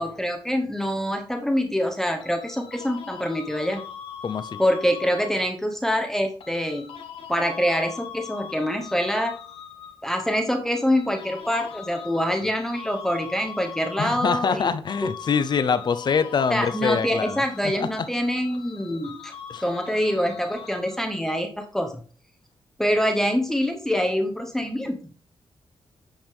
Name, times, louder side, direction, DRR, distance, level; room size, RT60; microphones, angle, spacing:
voice 1, 0.0-3.8 4.6-6.9 7.3-9.4 10.0-14.7 15.0-15.1 16.5-19.3 19.6-22.0 22.8-25.0, equal, 5° left, 0.9 m, -25 dB
sound 1, 2.2-5.6 6.4-10.2 10.6-14.6 14.9-21.2, left 8 dB, 90° left, 1.1 m, -41 dB
voice 2, 4.2-4.6 14.0-17.4 17.8-17.9 19.5-19.6, left 6 dB, 55° left, 0.7 m, -24 dB
9.0 x 5.1 x 3.6 m
cardioid pair, 95°, 9 cm